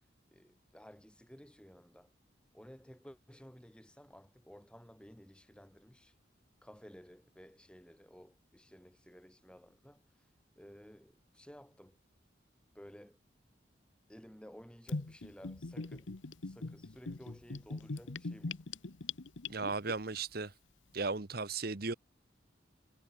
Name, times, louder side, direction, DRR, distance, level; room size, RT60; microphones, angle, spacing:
voice 1, 0.3-2.1 2.5-6.1 6.6-10.0 10.6-12.0 12.7-13.2 14.1-16.1 16.4-18.6, equal, 5° left, 1.9 m, -55 dB
Gurgling / Bathtub (filling or washing), 14.9-19.9, left 3 dB, 90° left, 1.1 m, -41 dB
voice 2, 19.5-20.5 20.9-21.9, right 4 dB, 55° right, 1.2 m, -36 dB
head